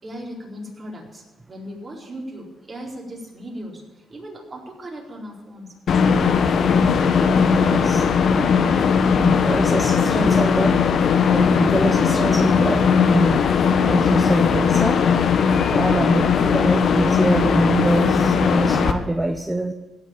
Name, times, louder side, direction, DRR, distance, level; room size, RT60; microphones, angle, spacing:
voice 1, 0.0-6.3, equal, 35° right, -2 dB, 4.4 m, -37 dB
sound 1, 5.9-18.9, left 6 dB, 60° left, 1.1 m, -18 dB
voice 2, 7.5-8.1 9.1-10.8 11.3-13.5 13.8-15.0 15.7-19.7, right 2 dB, 15° right, 8 dB, 0.8 m, -24 dB
16.5 x 6.3 x 9.0 m, 1.1 s
cardioid pair, 90°, 0 cm